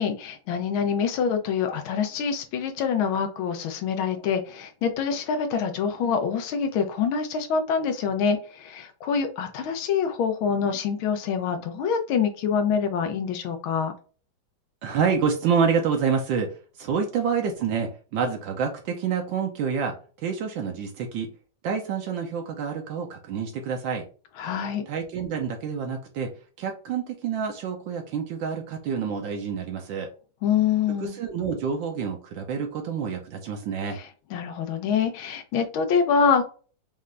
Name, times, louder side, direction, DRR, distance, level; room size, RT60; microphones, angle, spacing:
voice 1, 0.0-13.9 24.4-24.9 30.4-31.2 33.9-34.0 34.3-36.6, left 6 dB, 85° left, 6 dB, 1.6 m, -25 dB
voice 2, 14.8-21.3 21.6-24.0 24.9-26.3 26.6-30.1 31.0-34.0, right 6 dB, 75° right, 3 dB, 1.4 m, -28 dB
5.4 x 2.5 x 3.2 m, 0.38 s
omnidirectional pair, 2.2 m